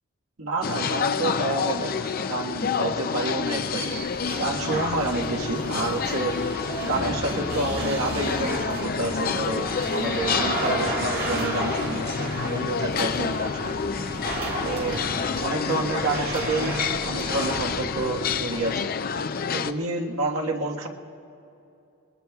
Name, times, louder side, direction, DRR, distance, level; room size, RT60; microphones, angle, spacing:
voice 1, 0.4-4.0 4.4-6.4 6.8-12.1 12.4-13.8 14.6-15.0 15.4-18.9 19.5-20.9, right 2 dB, 80° right, 1 dB, 1.5 m, -29 dB
sound 1, 0.6-19.7, left 6 dB, 45° left, 0.5 m, -28 dB
sound 2, 3.4-18.6, right 2 dB, 45° right, 1.9 m, -33 dB
Wind instrument woodwind instrument, 15.1-18.5, right 1 dB, 15° right, 1.9 m, -45 dB
28.0 x 21.0 x 2.4 m, 2.8 s
head